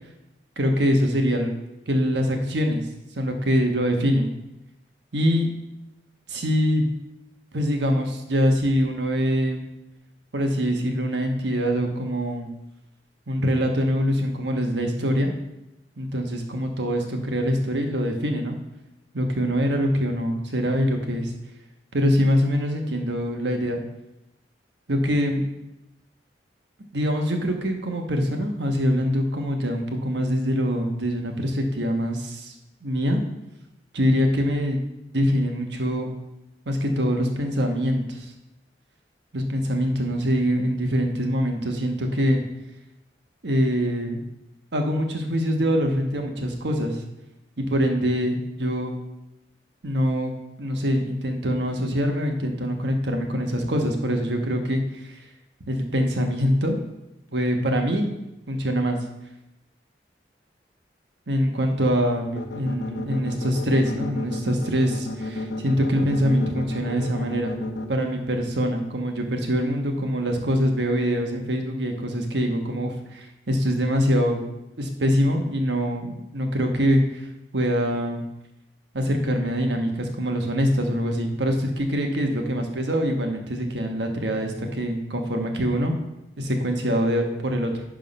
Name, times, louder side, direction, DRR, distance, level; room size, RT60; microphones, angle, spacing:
voice 1, 0.6-1.5 1.9-2.8 3.2-4.3 5.1-5.5 6.3-6.8 7.5-9.6 10.3-12.5 13.3-15.3 16.0-18.6 19.1-21.3 21.9-23.8 24.9-25.4 26.9-32.5 32.8-33.2 33.9-34.8 35.1-36.1 36.7-38.3 39.3-42.4 43.4-44.2 44.7-47.0 47.6-48.9 49.8-50.3 50.6-55.2 55.7-56.8 57.3-58.1 58.5-59.0 61.3-67.5 67.9-74.4 74.8-77.3 77.5-78.2 78.9-86.0 86.4-87.8, equal, 80° right, 3 dB, 1.2 m, -24 dB
sound 1, 62.4-67.9, left 2 dB, 90° left, 0.9 m, -31 dB
11.0 x 3.7 x 5.4 m, 0.92 s
head